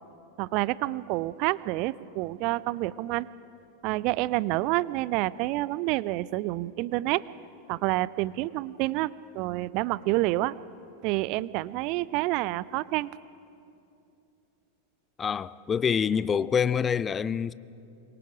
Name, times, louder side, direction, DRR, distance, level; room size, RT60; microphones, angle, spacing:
voice 1, 0.4-3.3 3.8-7.2 7.7-10.5 11.0-13.1, right 18 dB, 45° right, 0.4 m, -28 dB
voice 2, 15.2-17.5, left 7 dB, 20° left, 0.4 m, -26 dB
25.0 x 22.0 x 4.9 m
figure-of-eight pair, 90°, 0 cm